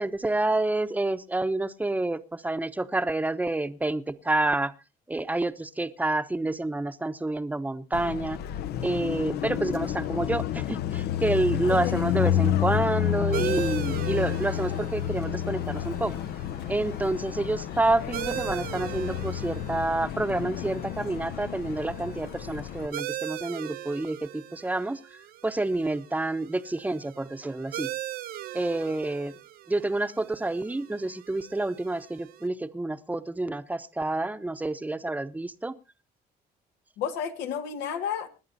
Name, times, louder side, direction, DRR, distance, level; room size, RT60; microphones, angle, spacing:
voice 1, 0.0-4.7 5.1-8.4 8.8-16.1 16.7-27.9 28.5-29.3 29.7-35.7, right 2 dB, 10° right, 0.9 m, -28 dB
Car passing by, 7.9-22.9, left 11 dB, 70° left, 0.8 m, -30 dB
voice 2, 11.7-12.0 37.0-38.3, left 8 dB, 90° left, 1.8 m, -32 dB
sound 1, 13.3-32.5, right 14 dB, 60° right, 0.6 m, -40 dB
26.5 x 11.0 x 2.7 m
cardioid pair, 110°, 17 cm